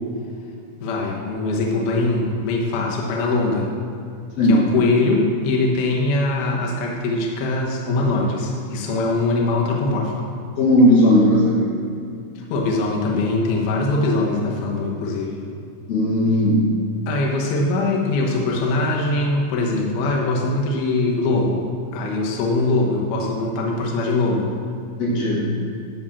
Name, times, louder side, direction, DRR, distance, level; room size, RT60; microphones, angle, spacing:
voice 1, 0.8-3.7 4.5-10.3 12.4-15.4 17.1-21.7 21.9-24.5, left 2 dB, 70° left, -2 dB, 2.9 m, -22 dB
voice 2, 10.6-11.6 15.9-16.6 25.0-25.5, left 1 dB, 55° left, -4 dB, 2.0 m, -16 dB
12.5 x 4.2 x 7.1 m, 2.4 s
omnidirectional pair, 4.8 m